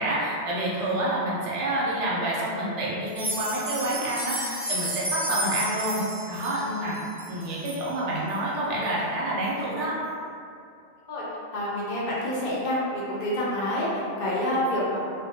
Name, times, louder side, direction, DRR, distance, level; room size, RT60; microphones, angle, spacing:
voice 1, 0.0-7.0 7.3-9.9, right 1 dB, 85° right, -5 dB, 1.0 m, -28 dB
sound 1, 3.1-7.8 8.3-8.4 8.8-8.9 9.4-9.5, right 1 dB, 30° right, 0.3 m, -32 dB
voice 2, 11.5-15.1, left 1 dB, 60° left, -6 dB, 0.7 m, -27 dB
2.5 x 2.1 x 2.7 m, 2.5 s
omnidirectional pair, 1.2 m